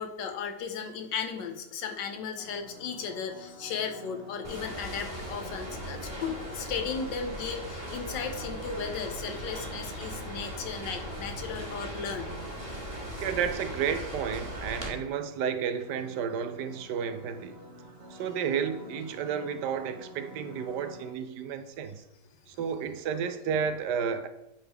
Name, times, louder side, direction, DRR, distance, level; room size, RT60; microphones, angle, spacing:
voice 1, 0.0-12.4, left 6 dB, 90° left, 1.6 m, -35 dB
sound 1, 2.4-21.1, right 2 dB, 45° right, 1.1 m, -49 dB
sound 2, 4.4-14.9, equal, 20° right, 1.6 m, -39 dB
voice 2, 13.2-17.6 18.1-22.0 22.5-24.3, right 7 dB, 75° right, 1.2 m, -32 dB
9.4 x 3.7 x 4.6 m
omnidirectional pair, 1.9 m